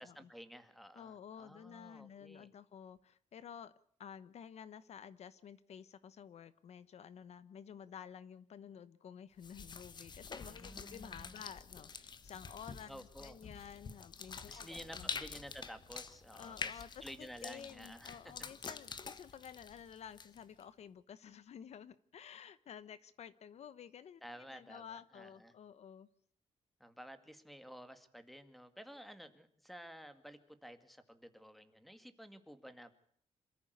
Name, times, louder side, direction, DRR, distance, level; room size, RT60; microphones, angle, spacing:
voice 1, 0.0-2.5 10.4-11.4 12.9-13.5 14.5-18.3 18.7-18.8 24.2-25.5 26.8-33.0, equal, ahead, 10 dB, 2.1 m, -53 dB
voice 2, 0.9-3.7 4.0-15.1 16.3-26.1, left 8 dB, 65° left, 16 dB, 1.0 m, -52 dB
sound 1, 9.4-20.6, left 5 dB, 35° left, 1.4 m, -47 dB
27.0 x 14.5 x 8.0 m, 0.63 s
wide cardioid pair, 160°, 12 cm